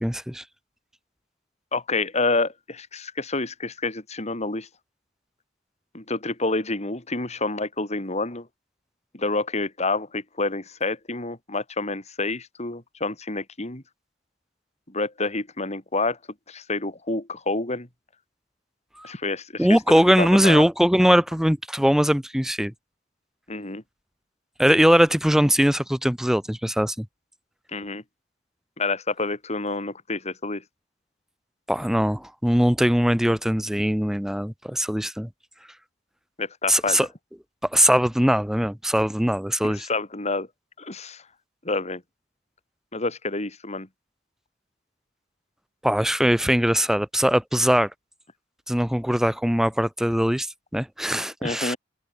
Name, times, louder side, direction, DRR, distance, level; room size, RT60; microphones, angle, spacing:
voice 1, 0.0-0.4 19.0-19.1 19.6-22.7 24.6-27.1 31.7-35.3 36.7-37.1 37.7-39.9 45.8-47.9 48.7-50.5 50.7-51.7, equal, ahead, 0.9 m, -21 dB
voice 2, 1.7-4.7 5.9-8.5 9.1-13.8 14.9-16.2 16.5-17.9 19.0-19.7 20.2-20.6 23.5-23.8 27.7-28.0 28.8-30.6 36.4-37.1 39.6-40.5 40.8-41.2 41.7-42.0 42.9-43.9 51.4-51.8, left 3 dB, 35° left, 3.5 m, -28 dB
head